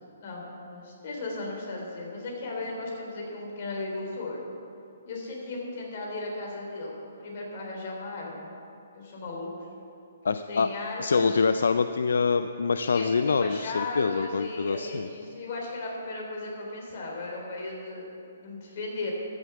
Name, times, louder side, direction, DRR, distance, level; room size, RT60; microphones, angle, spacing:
voice 1, 0.2-4.4 5.0-8.5 8.9-9.7 10.3-11.4 12.8-18.1 18.4-19.1, left 2 dB, 50° left, -1 dB, 3.4 m, -36 dB
voice 2, 10.2-10.7 11.0-15.1, left 5 dB, 80° left, 10 dB, 0.4 m, -25 dB
13.5 x 6.6 x 6.9 m, 2.7 s
hypercardioid pair, 155°, 0 cm